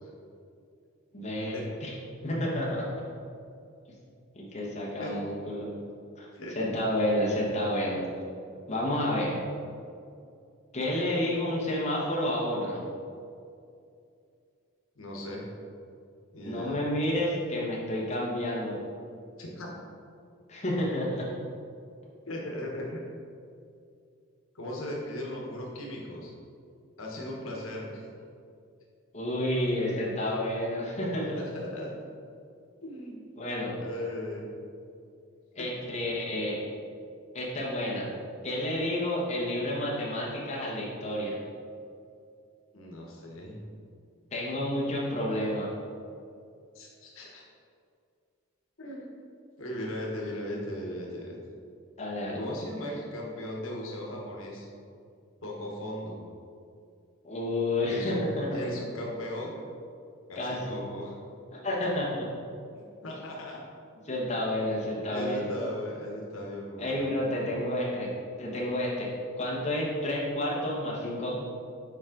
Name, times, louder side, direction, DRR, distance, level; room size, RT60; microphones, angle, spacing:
voice 1, 1.1-1.9 2.2-3.0 4.3-5.7 6.2-8.0 8.7-9.3 10.7-12.8 16.4-18.8 20.5-21.3 29.1-31.4 33.4-33.7 35.5-36.6 37.3-38.1 38.4-41.4 44.3-45.7 52.0-52.4 57.2-58.6 60.4-60.8 61.5-62.3 64.0-65.5 66.8-68.1 68.4-69.1 69.4-71.4, left 1 dB, 35° left, -5 dB, 1.2 m, -30 dB
voice 2, 6.3-6.7 15.0-15.4 16.3-16.8 19.4-19.7 22.3-23.0 24.5-26.3 27.0-28.0 31.3-31.9 32.8-33.2 33.8-34.4 35.6-35.7 42.7-43.6 46.7-47.4 48.8-49.1 49.6-51.4 52.4-54.7 55.4-56.2 57.8-58.2 58.5-59.5 60.3-61.1 62.7-63.6 65.1-67.1, left 1 dB, 80° left, -2 dB, 1.2 m, -37 dB
7.2 x 4.8 x 3.8 m, 2.4 s
head